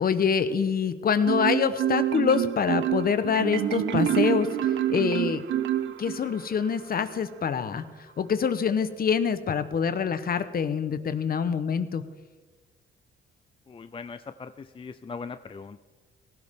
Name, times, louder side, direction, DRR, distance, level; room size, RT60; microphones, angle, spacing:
voice 1, 0.0-5.4 6.0-7.8 8.2-12.0, left 6 dB, 50° left, 12 dB, 1.1 m, -25 dB
Marimba xylophone, 1.3-6.4, right 11 dB, 70° right, 0.9 m, -26 dB
voice 2, 13.7-15.8, left 5 dB, 25° left, 11 dB, 0.5 m, -40 dB
17.5 x 15.5 x 3.8 m, 1.3 s
cardioid pair, 90°, 20 cm